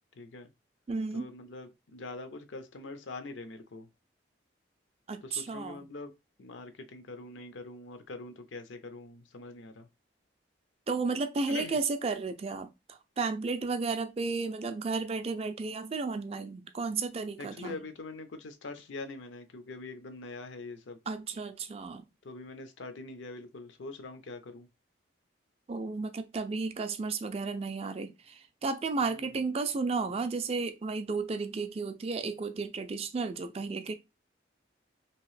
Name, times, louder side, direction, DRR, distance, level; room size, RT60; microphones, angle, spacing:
voice 1, 0.2-0.5 1.1-3.9 5.2-6.1 6.4-9.9 11.5-11.8 17.4-21.0 22.2-24.7 29.0-29.4, left 3 dB, 80° left, 0.6 m, -43 dB
voice 2, 0.9-1.3 5.1-5.8 10.9-17.8 21.1-22.1 25.7-33.9, right 4 dB, 30° right, 0.3 m, -33 dB
2.9 x 2.7 x 3.1 m
head